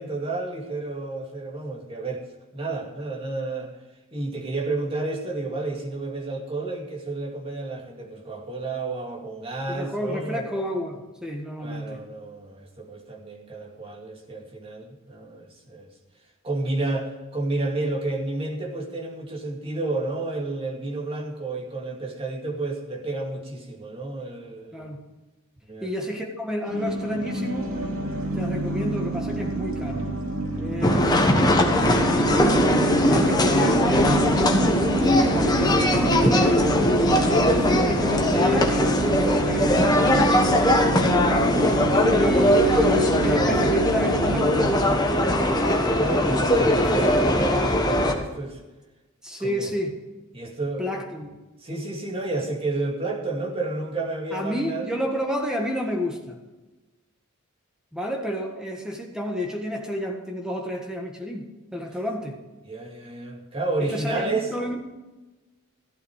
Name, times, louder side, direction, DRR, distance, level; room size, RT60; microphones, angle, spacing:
voice 1, 0.0-2.3 2.5-3.7 4.1-10.5 11.6-15.9 16.4-24.9 25.7-25.9 33.2-33.3 37.3-37.9 41.5-42.3 45.6-48.6 49.4-49.7 50.3-50.9 51.6-54.9 62.6-64.5, right 2 dB, 25° right, -1 dB, 2.5 m, -31 dB
voice 2, 9.7-12.0 24.7-25.0 25.8-27.7 28.3-30.1 30.6-32.7 33.1-34.6 35.0-36.7 37.6-40.5 42.1-44.8 49.2-50.0 50.8-51.3 54.3-56.4 57.9-61.5 61.7-62.4 63.8-64.8, equal, 5° right, 1 dB, 1.6 m, -30 dB
sound 1, 26.7-44.7, right 2 dB, 70° right, 2.6 m, -27 dB
sound 2, 30.8-48.1, left 1 dB, 20° left, 1.3 m, -20 dB
15.0 x 12.0 x 4.9 m, 1.1 s
head